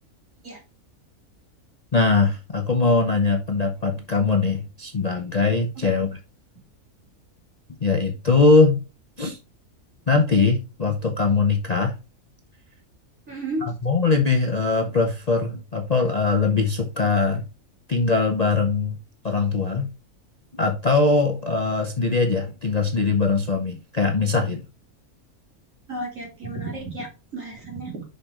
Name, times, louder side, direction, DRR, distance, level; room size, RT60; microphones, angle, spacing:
voice 1, 1.9-6.2 7.8-8.8 9.2-9.4 10.1-11.9 13.6-17.4 17.9-19.0 19.2-19.9 20.5-24.6, left 4 dB, 35° left, 0.7 m, -21 dB
voice 2, 13.3-13.7 25.9-28.0, right 2 dB, 60° right, 3.2 m, -33 dB
5.8 x 5.4 x 3.6 m
omnidirectional pair, 1.5 m